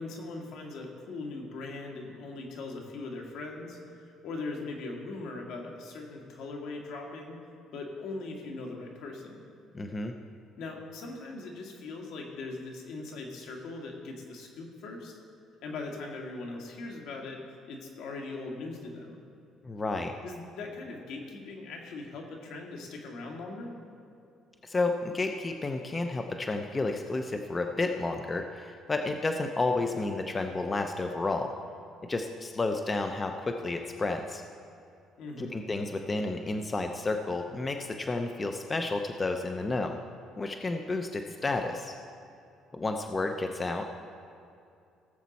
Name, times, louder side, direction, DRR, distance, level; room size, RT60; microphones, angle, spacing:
voice 1, 0.0-7.4 7.7-9.4 10.6-15.2 15.6-17.4 17.7-19.2 20.2-23.7 35.2-35.7, left 3 dB, 75° left, 1 dB, 1.9 m, -40 dB
voice 2, 9.7-10.1 19.6-20.1 24.6-31.5 32.1-34.4 35.4-40.0 40.4-41.9 42.7-43.9, left 3 dB, 20° left, 5 dB, 0.6 m, -31 dB
17.5 x 7.3 x 4.1 m, 2.5 s
cardioid pair, 125°, 0 cm